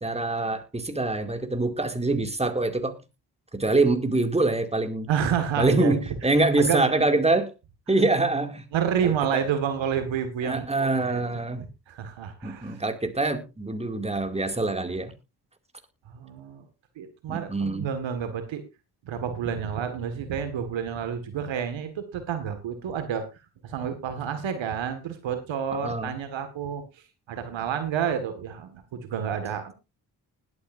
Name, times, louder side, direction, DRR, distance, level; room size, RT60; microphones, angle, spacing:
voice 1, 0.0-3.0 3.5-5.1 5.6-7.5 7.9-8.6 9.0-9.4 10.4-11.6 12.4-15.1 17.3-17.9 25.8-26.1, right 2 dB, 15° right, 6 dB, 2.4 m, -25 dB
voice 2, 5.1-6.0 6.6-6.9 8.7-11.2 11.6-12.8 16.1-16.7 17.0-18.6 19.1-23.2 23.6-26.8 27.3-29.7, right 8 dB, 70° right, 9 dB, 1.8 m, -29 dB
20.0 x 9.4 x 2.6 m, 0.26 s
hypercardioid pair, 45°, 46 cm